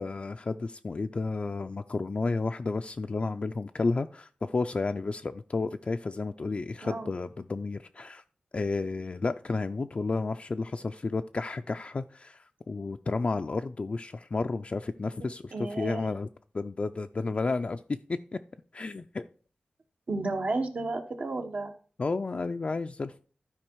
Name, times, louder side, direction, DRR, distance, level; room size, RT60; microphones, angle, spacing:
voice 1, 0.0-8.2 8.5-16.3 16.5-18.4 18.7-19.3 22.0-23.2, left 3 dB, 45° left, 6 dB, 0.4 m, -32 dB
voice 2, 6.8-7.1 15.2-16.1 20.1-21.7, right 2 dB, 60° right, 4 dB, 1.2 m, -33 dB
12.0 x 4.7 x 4.6 m, 0.41 s
wide cardioid pair, 105°, 3 cm